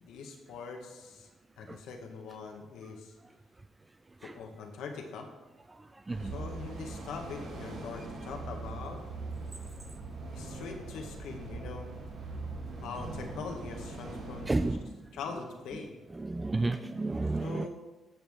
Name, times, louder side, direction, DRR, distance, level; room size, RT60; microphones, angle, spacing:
voice 1, 0.0-1.3 1.6-3.1 4.2-5.3 6.2-9.0 10.3-11.9 12.8-14.5 15.1-15.9 17.4-17.7, left 5 dB, 85° left, 3 dB, 1.5 m, -42 dB
voice 2, 5.7-6.3 14.5-15.0 16.1-17.7, right 2 dB, 20° right, 9 dB, 0.4 m, -32 dB
sound 1, 6.1-14.7, right 3 dB, 80° right, 2.9 m, -41 dB
15.0 x 6.1 x 3.7 m, 1.1 s
cardioid pair, 90°, 0 cm